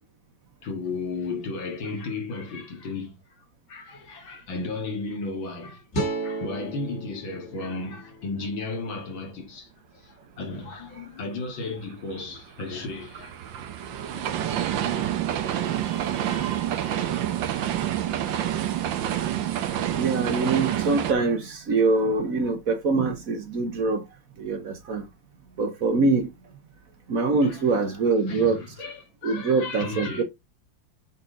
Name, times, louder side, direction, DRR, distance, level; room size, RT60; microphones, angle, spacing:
voice 1, 0.6-3.2 3.7-5.8 6.2-13.4 13.8-14.2 17.4-17.6 27.4-30.2, left 3 dB, 85° left, 2.7 m, -34 dB
sound 1, 5.9-9.1, right 1 dB, 40° left, 1.7 m, -34 dB
sound 2, 11.8-21.1, right 11 dB, 75° right, 1.6 m, -28 dB
voice 2, 15.8-17.0 19.9-24.0 24.4-25.0 25.6-26.3 27.1-28.6 29.2-30.2, right 3 dB, 50° right, 1.3 m, -24 dB
7.5 x 4.2 x 3.7 m
omnidirectional pair, 2.1 m